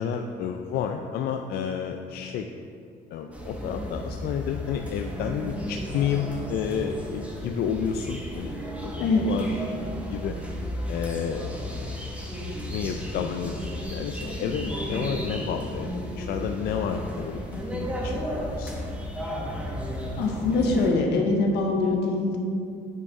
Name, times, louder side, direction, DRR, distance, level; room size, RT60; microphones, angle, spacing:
voice 1, 0.0-2.5 3.1-10.4 10.9-12.0 12.7-18.7, left 7 dB, 70° left, 5 dB, 0.4 m, -31 dB
sound 1, 3.3-20.9, equal, 10° right, 1.4 m, -34 dB
voice 2, 20.2-22.4, left 3 dB, 85° left, 2 dB, 1.0 m, -23 dB
9.0 x 5.2 x 3.6 m, 2.4 s
cardioid pair, 110°, 17 cm